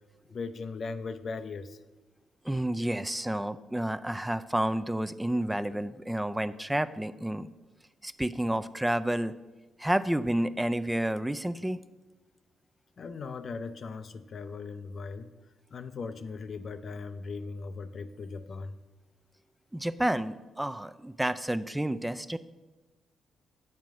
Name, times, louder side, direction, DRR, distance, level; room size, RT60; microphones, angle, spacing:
voice 1, 0.3-1.8 13.0-15.3 15.7-18.8, left 4 dB, 55° left, 11 dB, 0.5 m, -38 dB
voice 2, 2.4-7.5 8.0-9.3 9.8-11.8 19.7-22.4, right 1 dB, 10° right, 13 dB, 0.4 m, -30 dB
7.5 x 4.6 x 6.1 m, 1.2 s
hypercardioid pair, 45°, 0 cm